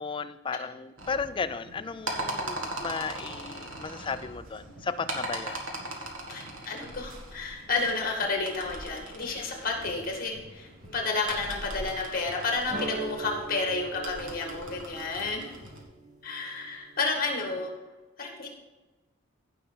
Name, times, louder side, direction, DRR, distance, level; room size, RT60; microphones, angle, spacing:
voice 1, 0.0-5.6, left 5 dB, 25° left, 12 dB, 0.3 m, -35 dB
sound 1, 1.0-15.8, right 1 dB, 75° right, 1.8 m, -40 dB
voice 2, 6.3-15.5 16.2-17.7 18.2-18.5, left 3 dB, 45° left, 2 dB, 1.9 m, -31 dB
sound 2, 12.7-17.6, right 3 dB, 35° right, 0.9 m, -42 dB
15.5 x 5.5 x 4.0 m, 1.2 s
head